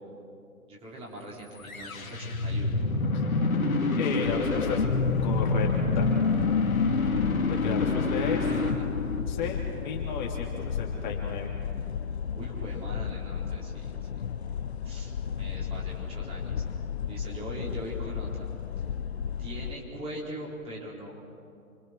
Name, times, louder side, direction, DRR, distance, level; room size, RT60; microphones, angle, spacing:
voice 1, 0.7-2.8 8.2-8.9 12.3-14.2 14.8-16.6 17.1-18.5 19.4-21.1, right 1 dB, 15° right, -4 dB, 4.5 m, -41 dB
sound 1, 1.6-9.7, left 3 dB, 70° left, 2.7 m, -27 dB
voice 2, 4.0-5.7 5.9-6.0 7.5-8.4 9.3-11.5, left 6 dB, 30° left, -1 dB, 3.0 m, -33 dB
sound 2, 4.2-19.7, left 7 dB, 45° left, 0.8 m, -34 dB
29.0 x 25.0 x 6.3 m, 2.4 s
figure-of-eight pair, 140°, 43 cm